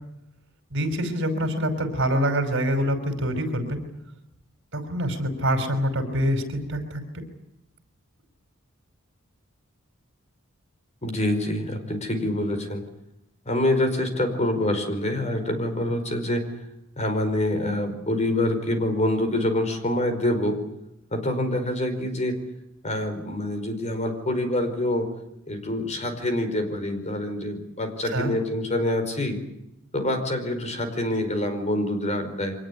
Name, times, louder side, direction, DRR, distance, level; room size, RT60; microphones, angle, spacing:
voice 1, 0.7-3.8 4.7-7.0 28.1-28.3, equal, 60° right, 8 dB, 5.3 m, -25 dB
voice 2, 11.0-12.8 13.4-16.4 17.0-20.6 21.1-22.4 22.8-25.1 25.5-29.4 29.9-32.5, left 1 dB, 30° left, 7 dB, 4.9 m, -26 dB
25.0 x 19.5 x 10.0 m, 0.86 s
head